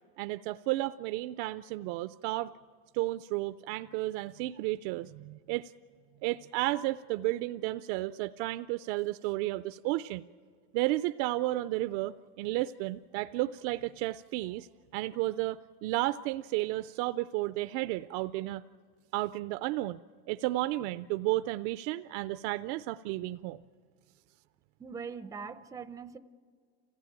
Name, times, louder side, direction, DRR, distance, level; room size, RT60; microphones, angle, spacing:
voice 1, 0.2-2.5 2.9-5.7 6.2-10.3 10.7-14.7 14.9-18.6 19.1-20.0 20.3-23.6, right 17 dB, 70° right, 13 dB, 0.5 m, -32 dB
voice 2, 24.8-26.2, right 5 dB, 10° right, 11 dB, 0.5 m, -41 dB
27.0 x 16.0 x 8.8 m, 2.1 s
cardioid pair, 145°, 35 cm